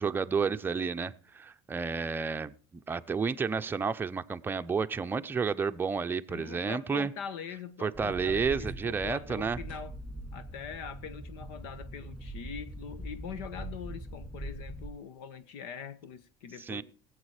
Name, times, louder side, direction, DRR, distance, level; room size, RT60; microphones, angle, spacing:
voice 1, 0.0-2.5 2.9-7.1 7.8-9.6 16.7-16.8, right 5 dB, 15° right, 0.6 m, -31 dB
voice 2, 6.3-9.9 10.3-16.8, left 7 dB, 90° left, 1.3 m, -43 dB
sound 1, 7.9-14.9, right 1 dB, 5° left, 2.4 m, -42 dB
18.5 x 8.1 x 4.9 m
cardioid pair, 140°, 13 cm